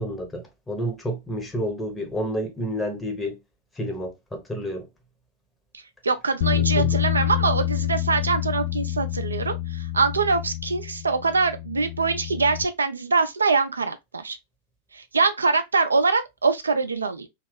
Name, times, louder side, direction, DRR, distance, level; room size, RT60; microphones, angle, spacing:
voice 1, 0.0-3.4 3.8-4.9 6.5-6.9, equal, 10° left, 0.9 m, -30 dB
voice 2, 6.0-14.4 14.9-17.3, right 4 dB, 75° right, 0.4 m, -23 dB
Bass guitar, 6.4-12.7, left 12 dB, 50° left, 0.4 m, -27 dB
3.0 x 2.3 x 3.3 m
figure-of-eight pair, 90°, 0 cm